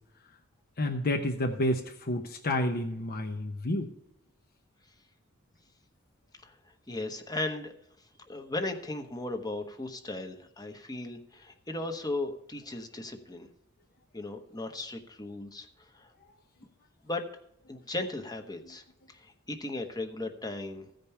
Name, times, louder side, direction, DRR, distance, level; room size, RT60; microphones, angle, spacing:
voice 1, 0.8-3.9, left 1 dB, 45° left, 4 dB, 0.8 m, -30 dB
voice 2, 6.9-7.7 8.3-13.5 14.1-16.1 17.0-17.3 17.7-20.9, left 2 dB, 20° left, 6 dB, 1.0 m, -37 dB
15.5 x 5.3 x 5.6 m, 0.83 s
head